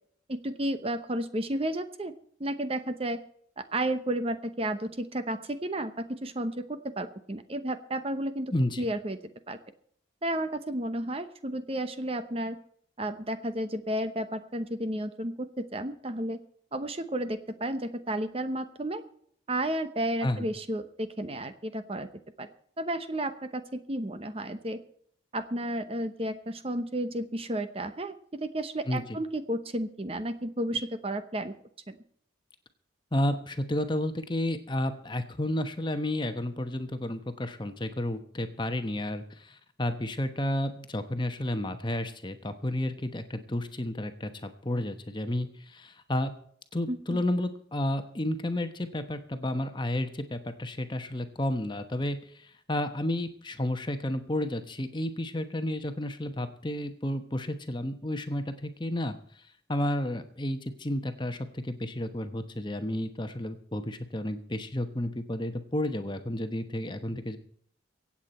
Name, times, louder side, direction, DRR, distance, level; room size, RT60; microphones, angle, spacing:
voice 1, 0.3-2.1 2.4-3.2 3.6-8.5 8.8-9.2 9.5-9.6 10.2-12.6 13.0-16.4 16.7-19.0 19.5-22.1 22.4-22.5 22.8-23.6 23.9-24.8 25.3-28.1 28.4-31.5 31.9-32.0 46.9-47.2, right 1 dB, 30° right, 10 dB, 0.9 m, -32 dB
voice 2, 8.5-8.9 20.2-20.5 28.9-29.0 33.1-46.3 46.7-59.4 59.7-67.4, left 1 dB, 25° left, 8 dB, 1.1 m, -31 dB
24.0 x 8.6 x 4.3 m, 0.64 s
head